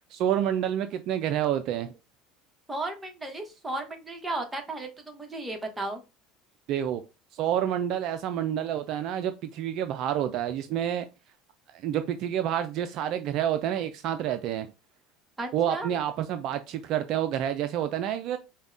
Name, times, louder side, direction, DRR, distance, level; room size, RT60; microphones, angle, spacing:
voice 1, 0.1-1.9 6.7-7.0 7.3-11.0 11.7-14.7 15.5-18.4, right 10 dB, 55° right, 0.3 m, -28 dB
voice 2, 2.7-6.0 15.4-15.9, right 2 dB, 15° right, 1.0 m, -34 dB
5.2 x 2.2 x 2.5 m
hypercardioid pair, 75°, 0 cm